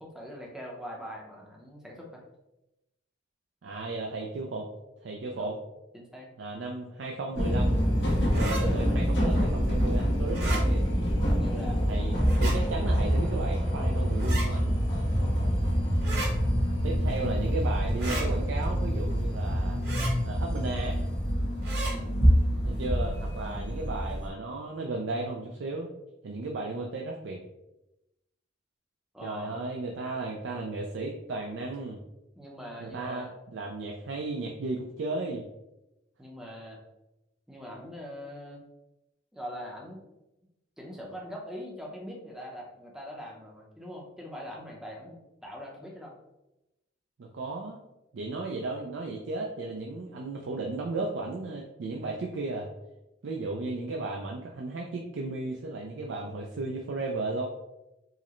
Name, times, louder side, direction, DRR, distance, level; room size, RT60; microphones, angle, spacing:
voice 1, 0.0-2.2 5.4-5.6 5.9-6.3 11.3-11.8 15.1-15.4 21.8-22.2 29.1-29.6 32.4-33.3 36.2-36.8 37.5-38.6 39.3-40.0 40.8-46.1, equal, 5° right, -2 dB, 0.6 m, -42 dB
voice 2, 3.6-4.7 5.0-5.5 6.4-7.9 8.3-10.8 11.9-14.8 16.8-19.8 20.2-21.1 22.7-25.9 26.2-27.4 29.2-32.0 32.8-35.5 47.2-47.8 48.1-52.7 53.2-57.5, right 3 dB, 75° right, 0 dB, 0.4 m, -34 dB
sound 1, 7.4-24.3, equal, 75° left, 1.1 m, -26 dB
sound 2, 8.3-8.6 10.3-10.6 12.2-12.6 14.2-14.5 16.0-16.3 18.0-18.3 19.8-20.1 21.6-21.9, right 2 dB, 60° right, 1.2 m, -34 dB
4.7 x 2.1 x 2.9 m, 0.93 s
head